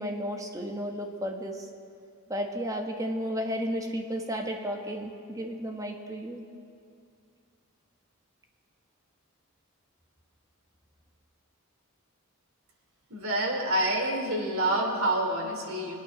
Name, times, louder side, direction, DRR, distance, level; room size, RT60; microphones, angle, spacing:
voice 1, 0.0-1.7 2.3-6.4, equal, 15° right, 2 dB, 1.4 m, -33 dB
voice 2, 13.1-15.9, right 1 dB, 75° right, 1 dB, 2.9 m, -27 dB
23.0 x 9.3 x 6.4 m, 2.4 s
head